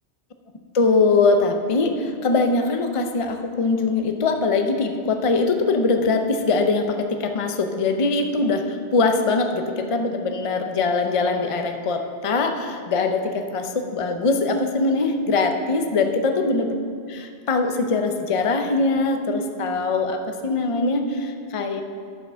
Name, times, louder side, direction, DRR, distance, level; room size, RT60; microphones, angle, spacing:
voice 1, 0.7-16.7 17.1-21.8, left 3 dB, 35° left, 5 dB, 0.6 m, -22 dB
11.0 x 5.9 x 6.2 m, 2.2 s
omnidirectional pair, 1.2 m